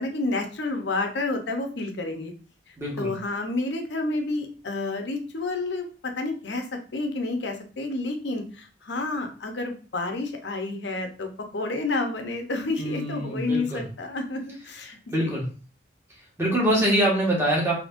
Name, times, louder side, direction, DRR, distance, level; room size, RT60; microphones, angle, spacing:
voice 1, 0.0-2.3 3.0-6.6 6.9-15.4, left 2 dB, 70° left, 5 dB, 0.7 m, -30 dB
voice 2, 2.8-3.1 12.8-13.8 15.1-15.5 16.4-17.7, right 1 dB, 15° right, -4 dB, 1.3 m, -24 dB
5.1 x 2.8 x 2.5 m, 0.38 s
head